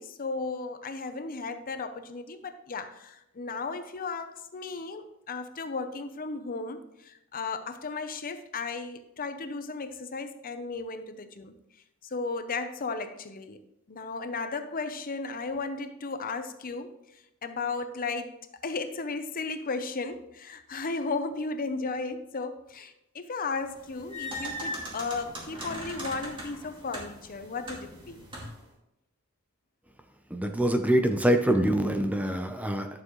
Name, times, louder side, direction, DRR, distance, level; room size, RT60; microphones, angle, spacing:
voice 1, 0.0-11.6 12.0-13.6 13.9-18.4 18.6-28.2, left 4 dB, 40° left, 9 dB, 0.7 m, -35 dB
sound 1, 23.7-28.7, equal, 25° right, 2.2 m, -39 dB
voice 2, 30.3-32.9, right 1 dB, 5° right, 6 dB, 0.6 m, -24 dB
11.0 x 7.2 x 3.1 m, 0.85 s
head